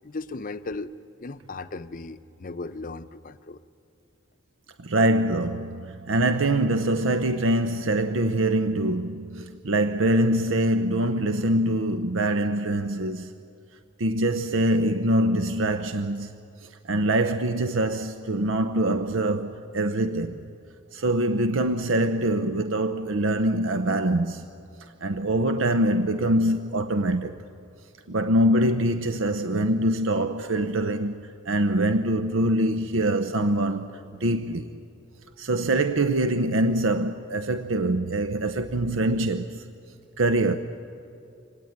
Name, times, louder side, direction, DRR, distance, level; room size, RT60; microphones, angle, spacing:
voice 1, 0.0-0.9 1.2-3.6, left 3 dB, 45° left, 0.7 m, -36 dB
voice 2, 4.8-13.3 14.0-16.3 16.6-20.4 20.9-24.4 24.8-27.4 28.1-34.7 35.4-39.6 40.2-40.6, right 1 dB, 90° right, 0.7 m, -24 dB
25.0 x 18.0 x 9.3 m
head